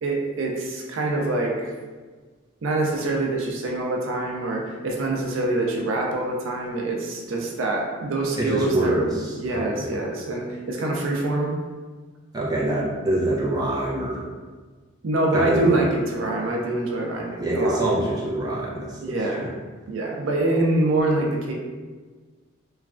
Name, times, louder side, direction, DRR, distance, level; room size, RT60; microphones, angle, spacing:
voice 1, 0.0-1.7 2.6-9.0 9.4-11.5 15.0-17.8 19.0-19.5 19.9-21.5, right 2 dB, 85° right, 0 dB, 0.5 m, -25 dB
voice 2, 8.4-9.3 12.3-14.2 15.3-15.8 17.4-19.0, right 1 dB, 20° right, -6 dB, 0.5 m, -24 dB
3.0 x 2.3 x 2.4 m, 1.4 s
head